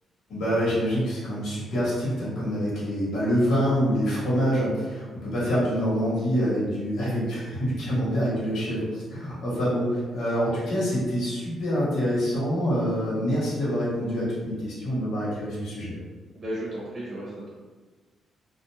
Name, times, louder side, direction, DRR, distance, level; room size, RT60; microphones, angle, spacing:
voice 1, 0.3-15.9, equal, 80° left, -8 dB, 1.2 m, -26 dB
voice 2, 16.3-17.5, right 1 dB, 30° right, -7 dB, 0.7 m, -34 dB
2.4 x 2.2 x 2.8 m, 1.3 s
cardioid pair, 135°, 0 cm